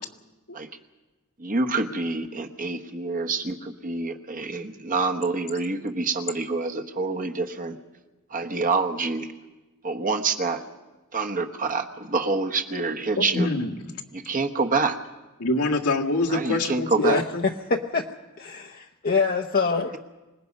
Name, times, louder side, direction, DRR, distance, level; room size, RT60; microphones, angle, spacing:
voice 1, 1.4-7.8 8.3-9.3 9.8-10.6 11.1-13.5 14.1-15.0 16.3-17.2, right 3 dB, 40° right, 6 dB, 1.2 m, -27 dB
voice 2, 13.2-14.0 15.4-17.4, left 2 dB, 80° left, 0 dB, 1.8 m, -25 dB
voice 3, 17.0-18.0 18.4-20.0, left 4 dB, 40° left, 2 dB, 0.8 m, -25 dB
25.5 x 19.5 x 5.4 m, 1.1 s
head